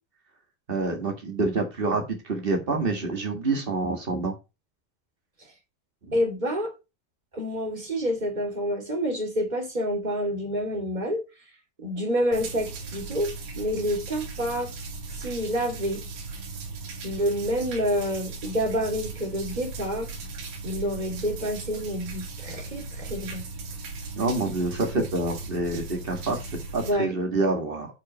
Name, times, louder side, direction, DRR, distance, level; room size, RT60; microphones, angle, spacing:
voice 1, 0.7-4.3 24.1-26.5 26.7-27.9, right 3 dB, 90° right, 0.5 m, -27 dB
voice 2, 6.1-6.7 7.3-11.2 11.8-13.3 13.6-14.7 15.2-16.0 17.0-20.1 20.6-23.4 26.8-27.2, equal, 15° right, 1.8 m, -28 dB
sound 1, 12.3-26.9, right 3 dB, 70° right, 4.0 m, -37 dB
8.4 x 5.0 x 5.4 m
omnidirectional pair, 4.1 m